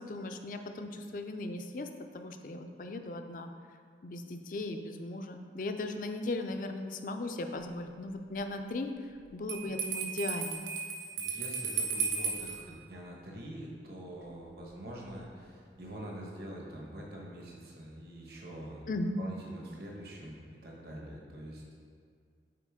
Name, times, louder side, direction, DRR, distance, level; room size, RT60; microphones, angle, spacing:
voice 1, 0.0-1.9 2.1-3.5 4.0-10.6 18.9-19.2, left 2 dB, 50° left, 6 dB, 0.4 m, -37 dB
Bell, 9.5-12.6, right 5 dB, 90° right, 0.9 m, -34 dB
voice 2, 11.2-18.8 19.2-21.7, right 1 dB, 60° right, -2 dB, 1.2 m, -45 dB
8.3 x 4.1 x 3.6 m, 2.1 s
head